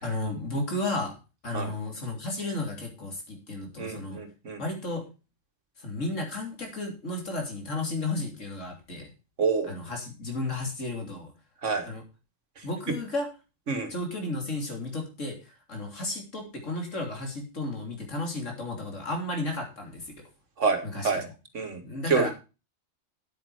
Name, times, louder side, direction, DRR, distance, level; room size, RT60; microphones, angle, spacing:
voice 1, 0.0-1.1 1.4-4.2 4.6-5.1 5.8-9.1 9.7-11.3 11.8-12.0 12.6-13.3 13.9-20.1 20.9-21.2 21.8-22.3, left 2 dB, 85° left, 3 dB, 3.5 m, -33 dB
voice 2, 3.8-4.6 9.4-9.7 11.6-11.9 12.6-13.0 13.7-13.9 20.6-21.2 21.5-21.8 22.1-22.3, right 4 dB, 75° right, 7 dB, 2.0 m, -28 dB
9.3 x 8.8 x 4.7 m, 0.31 s
omnidirectional pair, 1.3 m